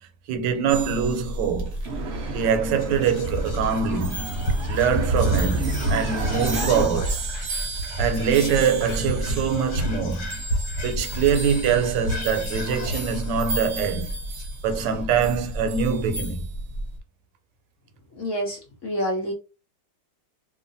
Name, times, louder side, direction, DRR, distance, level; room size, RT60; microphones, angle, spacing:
voice 1, 0.3-1.7 2.3-7.2 8.0-10.4 10.8-14.1 14.6-16.4, right 7 dB, 90° right, 1.2 m, -24 dB
sound 1, 0.7-17.0, right 1 dB, 50° right, 0.9 m, -32 dB
sound 2, 1.8-6.8, right 2 dB, 75° right, 0.6 m, -29 dB
Whispering, 2.7-15.2, equal, 85° left, 1.4 m, -32 dB
voice 2, 18.2-19.3, equal, 60° left, 0.8 m, -28 dB
2.9 x 2.3 x 2.5 m
omnidirectional pair, 1.9 m